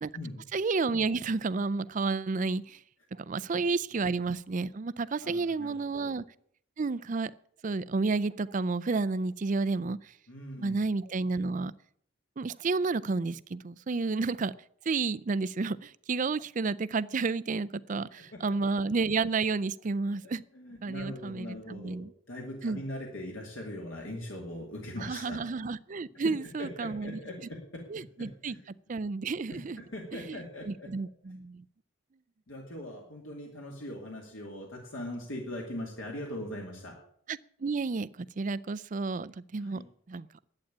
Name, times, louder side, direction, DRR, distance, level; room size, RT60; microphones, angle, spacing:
voice 1, 0.5-2.8 3.2-6.2 6.8-7.3 7.6-10.1 10.6-11.7 12.4-14.5 14.9-20.4 20.8-22.1 22.6-22.8 25.0-27.2 27.9-28.5 28.9-29.8 30.3-30.4 30.6-31.6 37.3-39.8 40.1-40.3, right 4 dB, 35° right, 0.4 m, -31 dB
voice 2, 5.2-6.1 10.3-10.8 18.3-18.6 20.2-22.0 22.3-25.4 26.1-26.2 26.6-27.8 28.2-28.7 29.5-30.9 32.5-37.0 39.6-39.8, left 1 dB, 70° left, 2.4 m, -41 dB
11.5 x 8.6 x 8.6 m
head